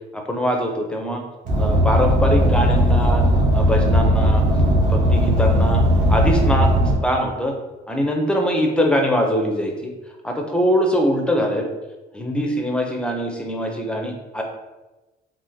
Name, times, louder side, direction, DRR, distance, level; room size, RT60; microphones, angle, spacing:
voice 1, 0.1-1.2 1.6-3.3 3.5-4.4 4.8-7.5 7.9-9.9 10.2-11.7 12.1-14.4, equal, 5° left, 2 dB, 0.5 m, -22 dB
Car, 1.4-6.9, equal, 50° right, 1.1 m, -17 dB
3.6 x 2.5 x 2.7 m, 1.1 s
cardioid pair, 110°, 17 cm